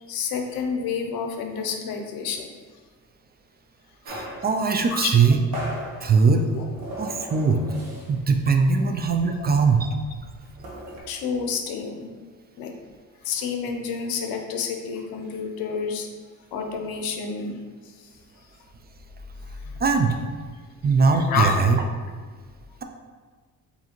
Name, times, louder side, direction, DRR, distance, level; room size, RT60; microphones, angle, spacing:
voice 1, 0.1-2.5 4.9-5.1 6.5-6.6 11.1-12.2 12.6-12.7 13.2-16.1 16.5-17.6 19.6-19.8 21.3-21.8, left 6 dB, 85° left, 4 dB, 0.6 m, -29 dB
sound 1, 4.0-8.3 8.6-8.8 9.1-11.0, equal, 85° right, 1.1 m, -38 dB
voice 2, 4.1-5.4 6.0-6.5 7.0-7.8 8.1-9.9 19.8-20.2 20.8-21.8, right 5 dB, 30° right, 4 dB, 0.4 m, -20 dB
4.7 x 2.7 x 2.9 m, 1.5 s
cardioid pair, 85°, 35 cm